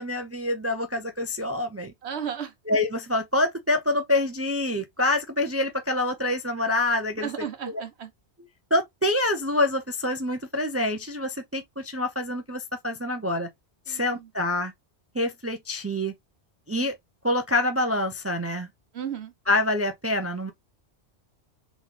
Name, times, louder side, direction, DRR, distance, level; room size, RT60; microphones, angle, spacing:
voice 1, 0.0-1.9 2.7-7.3 8.7-13.5 13.9-14.7 15.1-16.1 16.7-17.0 17.2-18.7 19.5-20.5, left 1 dB, 20° right, 0.3 m, -26 dB
voice 2, 2.0-2.5 7.2-8.1 13.9-14.3 18.9-19.3, right 8 dB, 70° right, 1.2 m, -34 dB
3.8 x 3.7 x 3.1 m
omnidirectional pair, 1.1 m